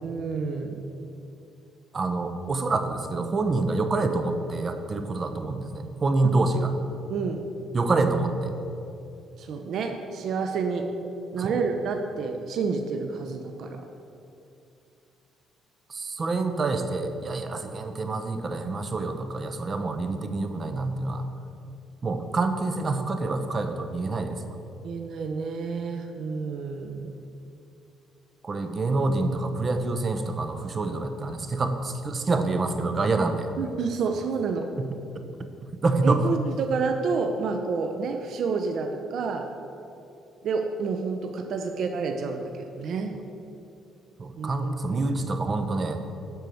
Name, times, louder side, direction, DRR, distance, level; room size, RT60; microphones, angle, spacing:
voice 1, 0.0-0.8 6.3-6.6 7.1-7.4 9.4-10.9 11.3-13.8 17.6-17.7 24.8-27.1 33.6-34.7 36.0-39.5 40.4-43.1 44.4-45.2, right 5 dB, 65° right, 5 dB, 0.8 m, -29 dB
voice 2, 1.9-6.7 7.7-8.5 11.4-11.6 15.9-21.3 22.0-24.4 28.4-33.5 34.8-34.9 35.8-36.3 44.2-46.0, right 3 dB, 40° right, 7 dB, 1.0 m, -27 dB
12.0 x 4.7 x 7.9 m, 2.7 s
cardioid pair, 80°, 0 cm